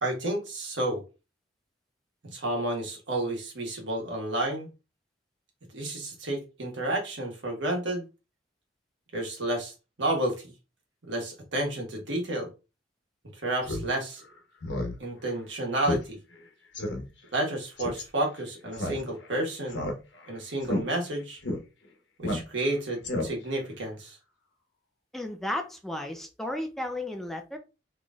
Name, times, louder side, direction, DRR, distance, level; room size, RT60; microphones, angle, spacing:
voice 1, 0.0-1.0 2.2-4.7 5.7-8.0 9.1-10.5 11.0-12.5 13.3-14.2 15.0-16.2 17.3-19.8 20.3-21.4 22.2-24.2, right 1 dB, 85° right, 1.4 m, -31 dB
Speech synthesizer, 13.6-13.8 14.2-14.3 14.6-14.9 15.3-15.4 15.8-16.0 16.3-16.4 16.7-17.0 17.8-18.0 18.7-19.3 19.7-20.3 20.6-20.8 21.4-21.6 22.2-22.7 23.0-23.6, left 1 dB, 80° left, 0.9 m, -31 dB
voice 2, 25.1-27.6, left 1 dB, ahead, 0.4 m, -34 dB
3.9 x 3.1 x 2.4 m
head